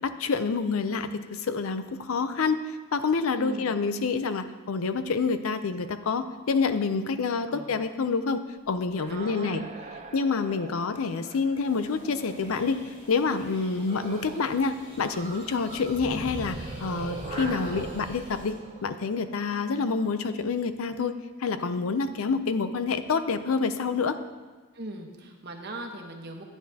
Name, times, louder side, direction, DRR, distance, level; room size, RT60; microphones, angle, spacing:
voice 1, 0.0-9.6 10.1-12.8 13.1-18.6 18.8-24.2, left 4 dB, 70° left, 11 dB, 0.5 m, -27 dB
voice 2, 3.4-3.8 7.5-7.8 9.1-9.7 24.7-26.4, right 1 dB, 50° right, 2 dB, 1.1 m, -39 dB
sound 1, 8.6-12.8 13.9-14.6 14.9-19.8, right 2 dB, 30° right, 0.6 m, -41 dB
sound 2, 11.6-18.5, equal, 35° left, 2.4 m, -46 dB
11.5 x 9.4 x 2.8 m, 1.3 s
head